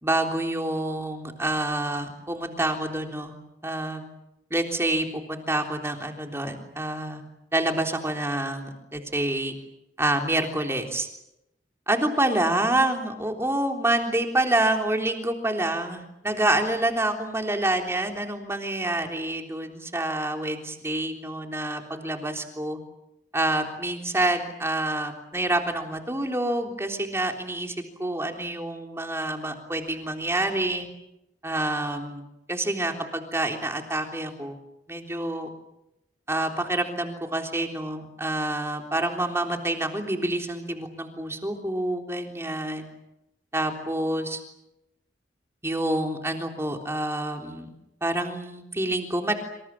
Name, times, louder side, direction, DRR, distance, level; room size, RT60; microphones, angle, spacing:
voice 1, 0.0-3.4 3.6-4.1 4.5-7.2 7.5-9.5 10.0-11.1 11.9-22.8 23.3-30.9 31.4-32.2 32.5-34.6 34.9-35.5 36.3-42.9 43.5-44.4 45.6-47.7 48.0-49.3, right 1 dB, 15° right, 3 dB, 3.6 m, -27 dB
27.5 x 26.5 x 7.4 m, 0.87 s
head